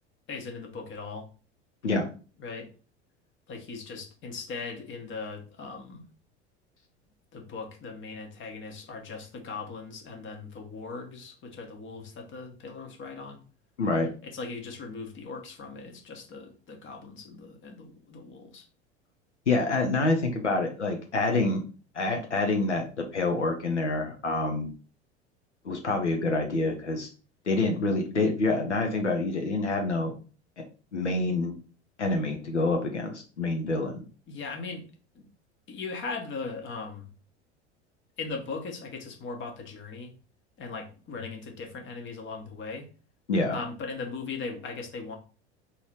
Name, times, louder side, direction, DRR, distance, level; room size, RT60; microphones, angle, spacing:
voice 1, 0.3-1.3 2.4-2.7 3.5-6.0 7.3-13.4 14.2-18.6 34.3-34.9 35.1-35.3 35.7-37.1 38.2-40.1 40.6-42.9 43.5-45.2, left 4 dB, 35° left, 3 dB, 1.3 m, -39 dB
voice 2, 13.8-14.1 19.5-21.6 21.9-24.7 25.6-27.1 27.5-30.1 30.6-30.7 30.9-31.6 32.0-34.0 43.3-43.6, left 2 dB, 85° left, 3 dB, 0.8 m, -27 dB
3.9 x 2.9 x 4.7 m, 0.37 s
figure-of-eight pair, 75°, 34 cm